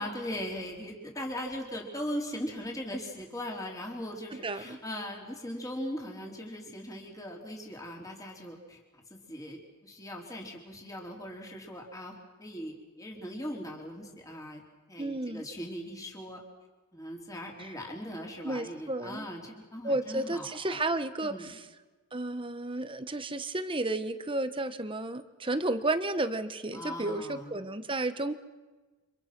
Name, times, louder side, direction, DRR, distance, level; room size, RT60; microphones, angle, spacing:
voice 1, 0.0-14.6 14.9-16.4 16.9-20.8 21.2-21.5 26.7-27.6, equal, 15° left, 0 dB, 4.2 m, -39 dB
voice 2, 4.4-4.8 15.0-15.4 18.4-19.3 19.8-21.6 22.1-28.3, right 2 dB, 25° right, 10 dB, 1.2 m, -32 dB
30.0 x 26.5 x 6.2 m, 1.3 s
head